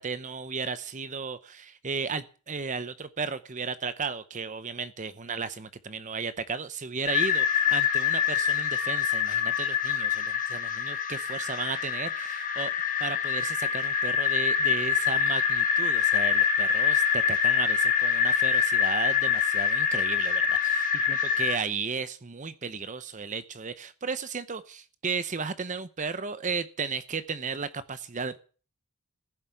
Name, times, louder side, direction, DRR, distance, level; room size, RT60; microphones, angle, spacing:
voice 1, 0.0-12.7 13.0-28.4, right 5 dB, 35° right, 0.8 m, -34 dB
sound 1, 7.1-21.6, left 7 dB, 40° left, 1.6 m, -25 dB
15.0 x 7.3 x 9.3 m
head